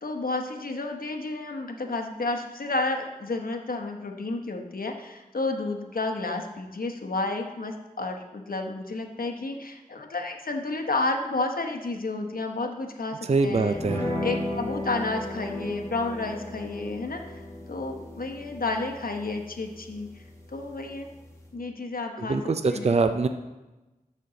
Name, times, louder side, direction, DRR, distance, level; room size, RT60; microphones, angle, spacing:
voice 1, 0.0-13.8 14.2-17.4 17.7-20.1 20.5-21.1 21.5-23.0, left 3 dB, 75° left, 4 dB, 1.0 m, -31 dB
voice 2, 13.3-14.1 22.2-23.3, right 3 dB, 45° right, 8 dB, 0.4 m, -24 dB
sound 1, 13.8-21.5, left 1 dB, 20° left, 1.6 m, -36 dB
12.5 x 5.3 x 3.9 m, 1.1 s
wide cardioid pair, 70°, 15 cm